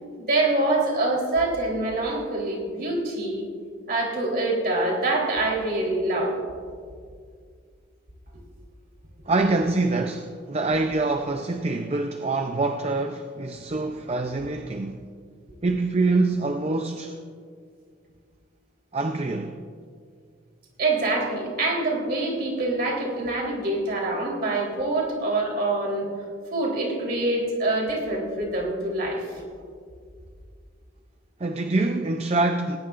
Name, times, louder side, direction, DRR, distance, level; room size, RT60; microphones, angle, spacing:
voice 1, 0.2-3.4 3.9-6.4 20.8-26.1 26.5-29.4, right 2 dB, 55° right, 3.7 m, -25 dB
voice 2, 9.3-15.0 15.6-17.2 18.9-19.6 31.4-32.8, right 3 dB, 35° right, 0.5 m, -25 dB
19.5 x 18.5 x 2.5 m
head